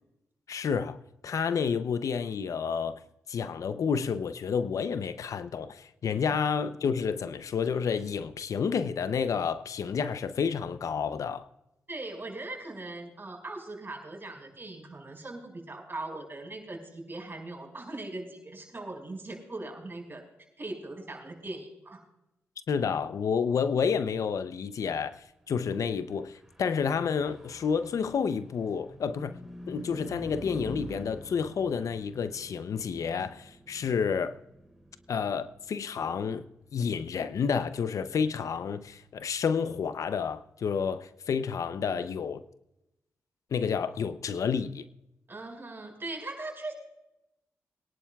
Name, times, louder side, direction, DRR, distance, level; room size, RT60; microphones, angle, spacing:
voice 1, 0.5-3.0 3.3-11.5 22.7-29.4 29.7-34.4 35.1-36.4 36.7-42.4 43.5-44.8, left 6 dB, 65° left, 0.6 m, -30 dB
voice 2, 11.9-20.2 20.6-22.0 45.3-46.7, right 2 dB, 35° right, 5.1 m, -40 dB
Car passing by / Truck, 26.1-39.8, equal, 5° right, 3.6 m, -48 dB
22.5 x 11.0 x 2.3 m
supercardioid pair, 45°, 6 cm